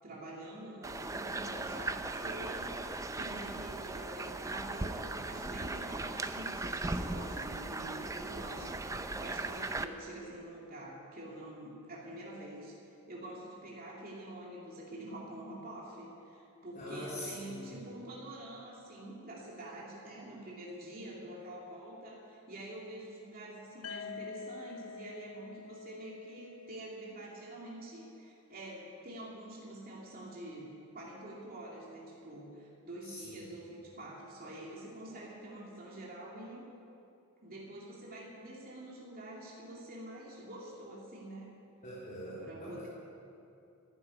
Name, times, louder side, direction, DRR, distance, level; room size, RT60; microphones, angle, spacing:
voice 1, 0.0-36.7 37.4-41.5 42.4-42.9, right 1 dB, 45° right, -4 dB, 2.7 m, -46 dB
sound 1, 0.8-9.9, right 2 dB, 15° right, 0.5 m, -38 dB
voice 2, 16.7-17.8 33.0-33.5 41.8-42.9, equal, 40° left, -8 dB, 3.5 m, -44 dB
sound 2, 23.8-27.7, left 6 dB, 70° left, 0.6 m, -47 dB
12.0 x 11.0 x 9.5 m, 2.6 s
head